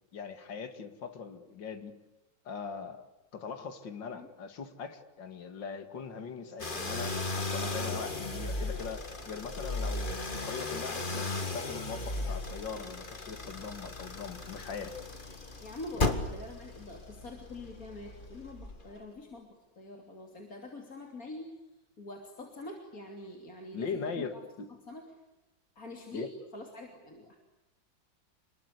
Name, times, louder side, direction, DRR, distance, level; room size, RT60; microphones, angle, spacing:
voice 1, 0.1-1.9 2.4-3.1 3.3-15.0 15.9-16.1 23.7-24.7 26.1-26.3, left 5 dB, 75° left, 8 dB, 2.8 m, -41 dB
sound 1, 6.6-19.0, left 2 dB, 25° left, 2.0 m, -36 dB
voice 2, 15.6-21.6 22.0-24.3 24.9-25.2 25.8-27.4, left 2 dB, 50° left, 3 dB, 3.4 m, -45 dB
28.0 x 22.0 x 8.3 m, 1.0 s
omnidirectional pair, 2.0 m